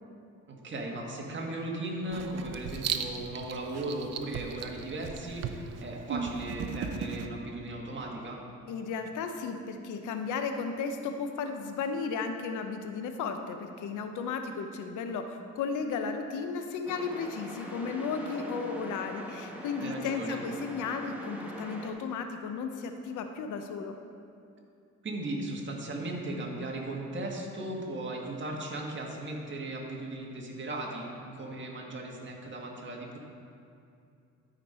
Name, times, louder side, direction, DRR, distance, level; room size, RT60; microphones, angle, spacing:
voice 1, 0.5-8.4 19.8-20.4 25.0-33.2, right 2 dB, 40° right, -1 dB, 1.7 m, -37 dB
Writing, 2.1-7.3, right 6 dB, 55° right, 0.6 m, -37 dB
voice 2, 8.7-23.9, left 5 dB, 85° left, 6 dB, 0.8 m, -34 dB
sound 1, 16.8-21.9, equal, 5° right, 1.3 m, -42 dB
12.0 x 5.2 x 4.3 m, 2.6 s
cardioid pair, 90°, 30 cm